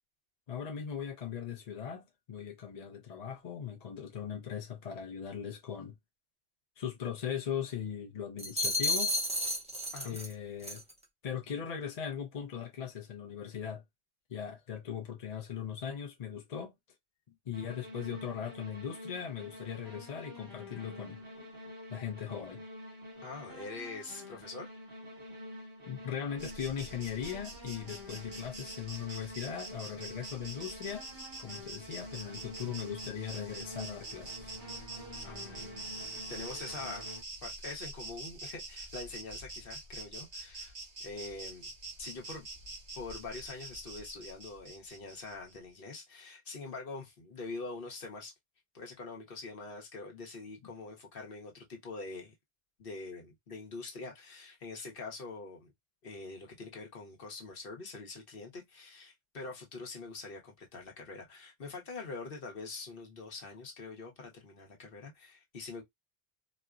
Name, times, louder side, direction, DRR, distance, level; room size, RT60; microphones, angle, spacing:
voice 1, 0.5-6.0 6.8-9.1 10.0-10.8 11.2-13.8 14.3-16.7 17.5-21.2 21.9-22.6 25.9-31.0 31.4-34.6 50.6-50.7, left 8 dB, 45° left, 0.6 m, -39 dB
sound 1, 8.4-10.3 10.6-10.9, left 1 dB, 10° right, 0.5 m, -32 dB
sound 2, 17.5-37.2, equal, 60° right, 1.6 m, -48 dB
voice 2, 23.2-24.7 35.2-35.7 36.3-37.1 37.4-40.7 41.0-41.7 42.0-42.5 42.9-48.3 48.7-52.3 52.8-55.7 56.0-65.8, left 3 dB, 65° left, 1.1 m, -44 dB
Insect, 26.4-45.6, right 2 dB, 75° right, 1.4 m, -46 dB
4.2 x 2.1 x 2.4 m
omnidirectional pair, 1.0 m